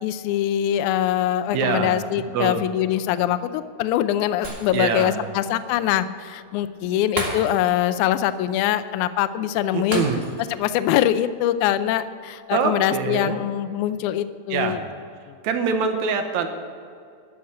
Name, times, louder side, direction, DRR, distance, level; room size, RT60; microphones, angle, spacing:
voice 1, 0.0-10.1 10.5-14.8 15.3-15.4, left 11 dB, 80° left, 12 dB, 1.9 m, -23 dB
voice 2, 1.5-2.0 2.3-2.7 4.7-5.2 9.7-10.2 12.5-13.4 14.5-14.8 15.4-16.5, right 5 dB, 70° right, 6 dB, 2.2 m, -24 dB
Shatter, 4.4-5.1 5.5-5.6 7.2-7.9 8.2-8.4 9.9-10.6 11.0-11.1, right 1 dB, 25° right, 1.6 m, -32 dB
13.0 x 7.1 x 8.6 m, 2.3 s
omnidirectional pair, 3.8 m